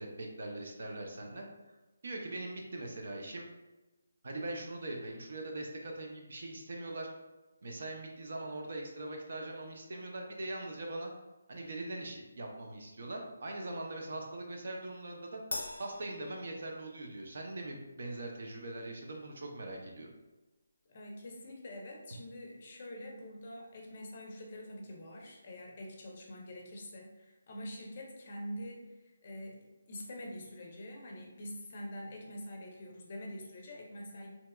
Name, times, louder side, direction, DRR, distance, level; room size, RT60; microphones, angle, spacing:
voice 1, 0.0-1.7 2.0-3.4 4.2-7.1 7.6-11.1 11.5-15.4 15.8-20.1, right 2 dB, 55° right, 1 dB, 0.6 m, -41 dB
Crash cymbal, 15.5-17.2, left 2 dB, 90° left, 0.5 m, -42 dB
voice 2, 20.9-34.3, left 1 dB, 35° left, 0 dB, 0.6 m, -45 dB
3.3 x 2.9 x 2.3 m, 1.1 s
hypercardioid pair, 170°, 0 cm